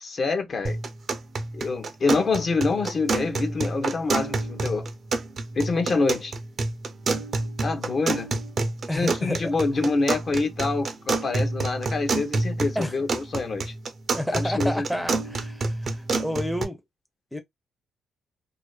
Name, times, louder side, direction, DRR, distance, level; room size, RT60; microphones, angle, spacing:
voice 1, 0.0-0.8 1.5-4.9 5.6-6.3 7.6-8.3 8.9-13.7 14.3-14.9, left 3 dB, 45° left, 0.6 m, -26 dB
sound 1, 0.6-16.6, right 3 dB, 50° right, 0.5 m, -29 dB
voice 2, 8.9-9.5 12.7-13.0 14.1-16.8 17.3-17.4, equal, ahead, 0.5 m, -30 dB
2.4 x 2.3 x 2.2 m
cardioid pair, 90°, 0 cm